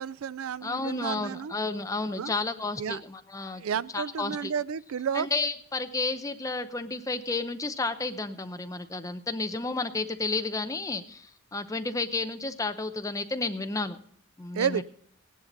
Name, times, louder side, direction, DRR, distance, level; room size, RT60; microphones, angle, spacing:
voice 1, 0.0-1.5 2.2-2.3 2.8-3.0 3.5-5.3 14.5-14.8, right 7 dB, 85° right, 19 dB, 0.4 m, -31 dB
voice 2, 0.6-3.6 3.9-4.5 5.1-14.0 14.4-14.8, left 3 dB, 15° left, 8 dB, 0.6 m, -32 dB
16.5 x 10.5 x 3.9 m, 0.63 s
head